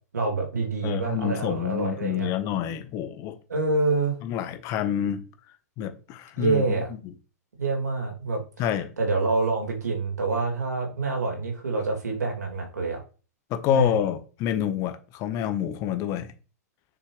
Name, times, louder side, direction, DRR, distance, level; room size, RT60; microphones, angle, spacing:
voice 1, 0.1-2.3 3.5-4.1 6.4-6.9 7.5-8.4 9.0-13.0 13.7-13.9, right 3 dB, 80° right, 1 dB, 3.1 m, -26 dB
voice 2, 0.8-3.3 4.2-5.2 5.8-7.0 8.6-8.9 13.5-16.3, left 10 dB, 35° left, 9 dB, 1.3 m, -28 dB
7.3 x 6.4 x 3.4 m, 0.36 s
hypercardioid pair, 110°, 9 cm